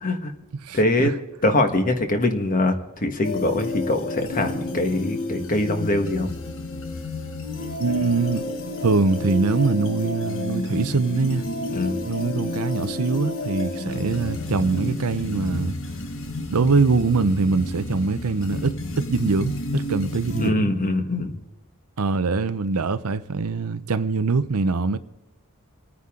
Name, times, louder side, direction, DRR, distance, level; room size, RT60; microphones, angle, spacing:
voice 1, 0.0-0.3 0.7-1.1 1.4-6.3 11.7-12.0 20.4-21.4, left 2 dB, 40° left, 1.4 m, -23 dB
voice 2, 0.6-1.1 7.8-8.5 8.8-11.4 12.1-15.7 16.5-20.7 22.0-25.0, right 4 dB, 80° right, 0.7 m, -23 dB
sound 1, 3.2-20.5, left 2 dB, 65° left, 1.2 m, -30 dB
28.0 x 9.6 x 3.7 m
head